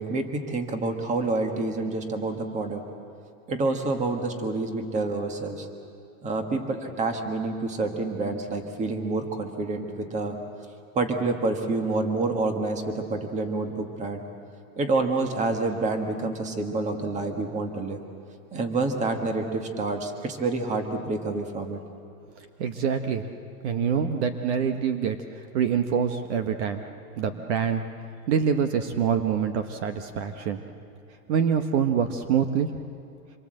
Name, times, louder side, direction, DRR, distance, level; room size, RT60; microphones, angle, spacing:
voice 1, 0.0-2.8 3.5-5.7 6.2-10.4 10.9-14.2 14.7-18.0 18.5-21.8, right 3 dB, 15° right, 5 dB, 1.6 m, -28 dB
voice 2, 22.6-23.3 23.6-26.8 27.2-27.8 28.3-30.6 31.3-32.7, right 7 dB, 50° right, 7 dB, 1.3 m, -25 dB
27.0 x 23.0 x 7.8 m, 2.6 s
supercardioid pair, 160°, 44 cm